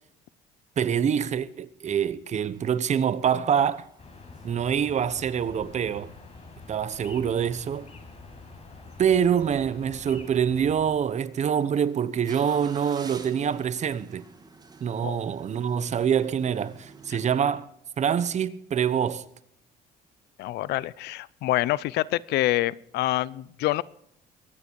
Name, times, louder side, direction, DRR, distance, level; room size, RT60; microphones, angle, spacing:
voice 1, 0.8-3.9 4.4-6.1 6.7-7.9 9.0-14.2 14.8-17.7 18.0-19.3, right 8 dB, 45° right, 1.0 m, -25 dB
sound 1, 2.5-17.3, right 4 dB, 25° right, 2.3 m, -52 dB
sound 2, 4.0-10.9, left 3 dB, 40° left, 5.6 m, -46 dB
voice 2, 20.4-23.8, left 16 dB, 80° left, 0.6 m, -26 dB
23.0 x 9.8 x 4.7 m
cardioid pair, 110°, 17 cm